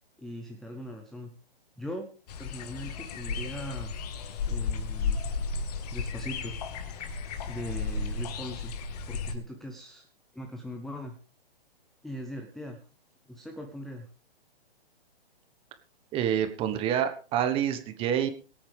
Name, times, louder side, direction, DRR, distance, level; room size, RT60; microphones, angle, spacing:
voice 1, 0.2-1.3 1.8-2.1 2.4-4.0 4.5-5.2 5.9-6.5 7.5-8.7 9.1-10.1 10.3-11.2 12.0-12.8 13.3-14.1, equal, ahead, 4 dB, 0.6 m, -40 dB
sound 1, 2.3-9.3, left 4 dB, 40° left, 1.7 m, -34 dB
voice 2, 16.1-18.3, right 9 dB, 20° right, 10 dB, 1.3 m, -27 dB
22.5 x 8.7 x 3.4 m, 0.37 s
hypercardioid pair, 145°, 30 cm